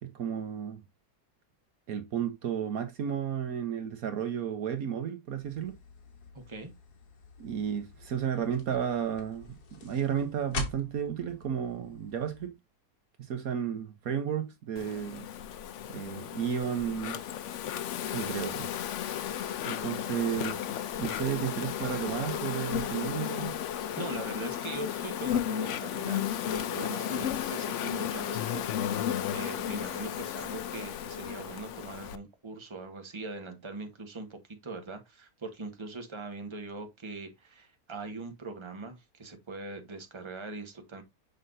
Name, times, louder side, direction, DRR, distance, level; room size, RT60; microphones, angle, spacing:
voice 1, 0.0-0.8 1.9-5.8 7.4-9.5 9.8-12.5 13.2-15.3 15.9-17.2 18.1-18.7 19.7-20.7 21.0-23.6, right 8 dB, 65° right, 1.3 m, -33 dB
sound 1, 5.4-12.5, left 4 dB, 80° left, 2.1 m, -44 dB
voice 2, 6.3-6.7 24.0-28.6 28.9-41.0, right 3 dB, 20° right, 1.3 m, -41 dB
Insect, 14.8-32.2, left 10 dB, 65° left, 0.8 m, -34 dB
6.6 x 5.8 x 2.6 m
omnidirectional pair, 1.7 m